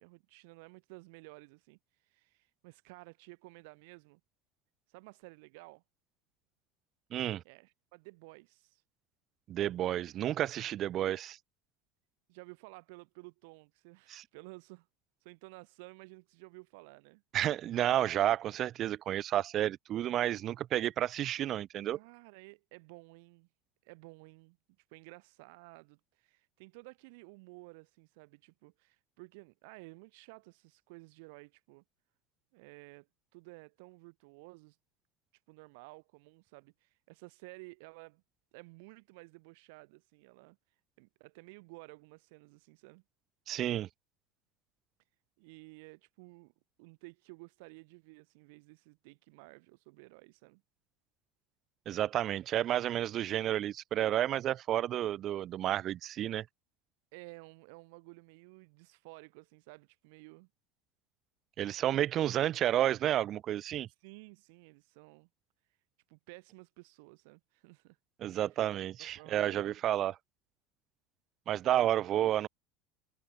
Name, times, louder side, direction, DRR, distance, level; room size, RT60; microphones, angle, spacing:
voice 1, 0.0-4.2 4.9-5.8 7.4-8.8 12.3-14.9 15.2-17.2 21.9-23.5 23.8-24.6 24.9-31.8 32.5-33.1 33.3-34.8 35.5-38.2 38.5-40.6 41.0-43.0 45.4-46.5 46.8-50.6 57.1-60.5 64.0-65.3 66.1-68.0 68.5-68.7 69.2-69.8, right 28 dB, 60° right, 2.0 m, -54 dB
voice 2, 7.1-7.4 9.5-11.4 14.1-14.2 17.3-22.0 43.5-43.9 51.9-56.5 61.6-63.9 68.2-70.1 71.5-72.5, right 12 dB, 30° right, 0.5 m, -31 dB
cardioid pair, 180°, 0 cm